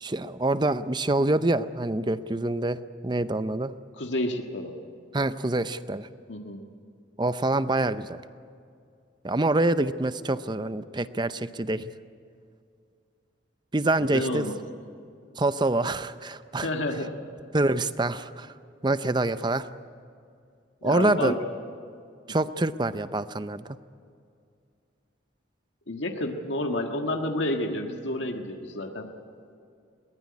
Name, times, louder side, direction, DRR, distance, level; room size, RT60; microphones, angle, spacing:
voice 1, 0.0-3.7 5.1-6.1 7.2-8.2 9.2-11.9 13.7-14.5 15.4-16.7 17.5-18.5 18.8-19.6 20.8-21.4 22.3-23.8, right 2 dB, 25° right, 13 dB, 0.6 m, -26 dB
voice 2, 4.0-4.7 6.3-6.6 14.0-14.5 16.6-17.2 20.8-21.4 25.9-29.1, left 1 dB, 75° left, 3 dB, 1.7 m, -30 dB
22.0 x 19.5 x 9.6 m, 2.4 s
head